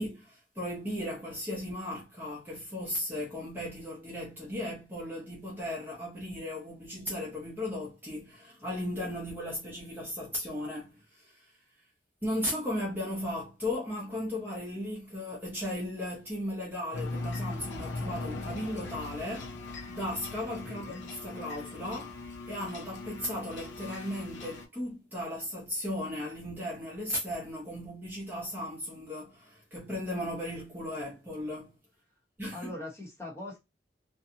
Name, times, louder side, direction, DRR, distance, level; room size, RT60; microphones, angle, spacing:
voice 1, 0.0-11.5 12.2-22.2 22.5-31.7 32.4-32.7, left 1 dB, 10° right, 0.7 m, -36 dB
sound 1, 16.9-24.7, left 3 dB, 90° left, 0.7 m, -39 dB
voice 2, 20.6-21.0 32.5-33.6, left 1 dB, 15° left, 1.0 m, -41 dB
2.5 x 2.2 x 2.7 m
head